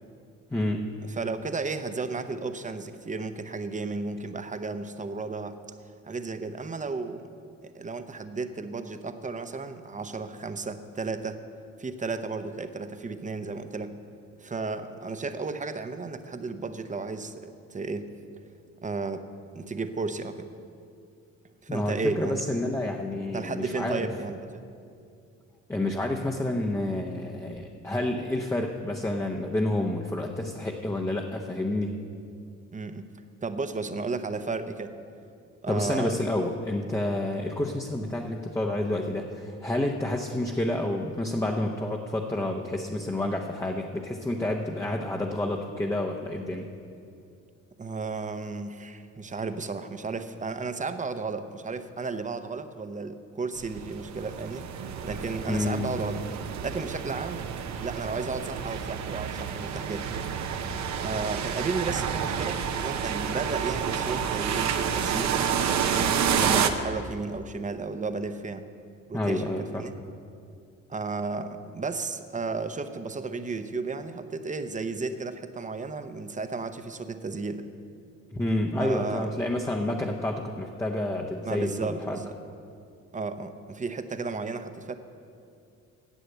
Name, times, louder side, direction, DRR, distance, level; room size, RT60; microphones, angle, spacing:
voice 1, 0.5-0.9 21.7-24.1 25.7-32.0 35.7-46.7 55.5-56.0 69.1-69.9 78.3-82.2, left 1 dB, 10° left, 1 dB, 0.8 m, -29 dB
voice 2, 1.1-5.6 6.1-7.3 7.6-11.4 11.8-13.9 14.4-18.1 18.8-19.2 19.5-20.5 21.6-22.4 23.3-24.6 32.7-33.1 33.4-34.9 35.6-36.2 47.8-54.7 55.0-56.2 56.6-57.5 57.8-60.1 61.0-65.8 66.3-68.6 69.1-69.9 70.9-77.6 78.8-79.3 81.4-82.3 83.1-84.9, right 4 dB, 25° right, 10 dB, 0.8 m, -33 dB
sound 1, 53.6-66.7, right 7 dB, 65° right, 0.8 m, -29 dB
10.0 x 7.7 x 7.9 m, 2.4 s
cardioid pair, 90°, 30 cm